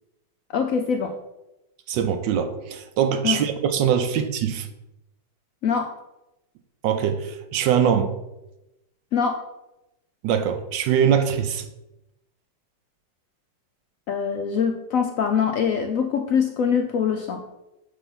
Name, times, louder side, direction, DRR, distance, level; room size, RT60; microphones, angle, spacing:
voice 1, 0.5-1.1 3.2-3.4 5.6-5.9 9.1-9.4 14.1-17.4, left 6 dB, 70° left, 5 dB, 0.8 m, -23 dB
voice 2, 1.9-4.7 6.8-8.1 10.2-11.6, right 8 dB, 80° right, 8 dB, 1.3 m, -22 dB
6.9 x 4.1 x 5.7 m, 0.94 s
omnidirectional pair, 2.0 m